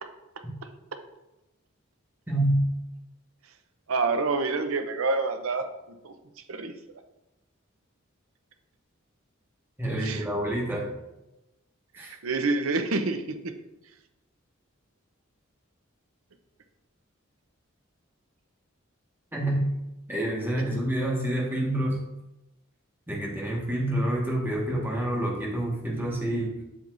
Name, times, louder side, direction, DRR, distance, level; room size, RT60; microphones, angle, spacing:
voice 1, 2.3-2.6 9.8-11.0 11.9-12.2 19.3-19.6 20.1-22.0 23.1-26.5, right 1 dB, 10° right, -3 dB, 1.6 m, -27 dB
voice 2, 3.9-5.6 6.0-6.1 6.5-6.7 10.0-10.3 11.9-13.5, right 3 dB, 90° right, 7 dB, 0.7 m, -27 dB
7.8 x 7.0 x 2.6 m, 0.95 s
head